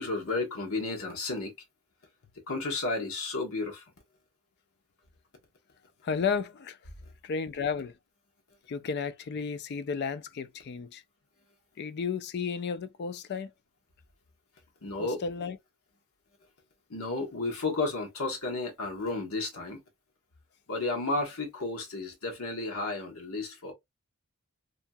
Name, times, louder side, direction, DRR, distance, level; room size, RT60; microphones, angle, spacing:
voice 1, 0.0-1.5 2.5-3.8 14.8-15.2 16.9-19.8 20.7-23.7, left 3 dB, 70° left, 1.1 m, -32 dB
voice 2, 6.0-6.8 7.2-7.9 8.7-11.0 11.8-13.5 15.0-15.6, left 5 dB, 50° left, 0.3 m, -33 dB
2.7 x 2.7 x 2.2 m
head